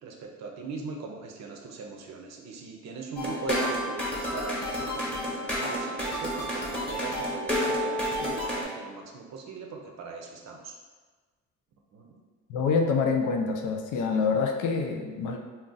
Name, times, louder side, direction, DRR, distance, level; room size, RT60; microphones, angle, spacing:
voice 1, 0.0-10.7 11.9-12.2, right 4 dB, 60° right, 1 dB, 0.5 m, -39 dB
sound 1, 3.2-8.6, equal, 5° left, 0.9 m, -30 dB
voice 2, 12.5-15.4, left 5 dB, 80° left, 3 dB, 0.5 m, -26 dB
2.5 x 2.0 x 3.8 m, 1.3 s
cardioid pair, 90°, 30 cm